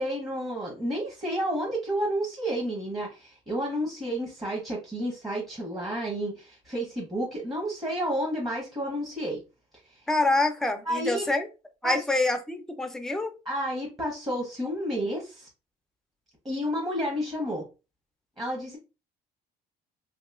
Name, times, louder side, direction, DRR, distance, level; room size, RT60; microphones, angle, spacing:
voice 1, 0.0-9.4 9.9-10.0 10.8-11.3 11.8-12.0 13.4-15.5 16.4-17.6 18.4-18.8, equal, 20° right, 1.0 m, -31 dB
voice 2, 10.1-11.5 11.8-13.3, left 2 dB, 5° left, 0.4 m, -26 dB
2.9 x 2.8 x 2.4 m
cardioid pair, 110°, 17 cm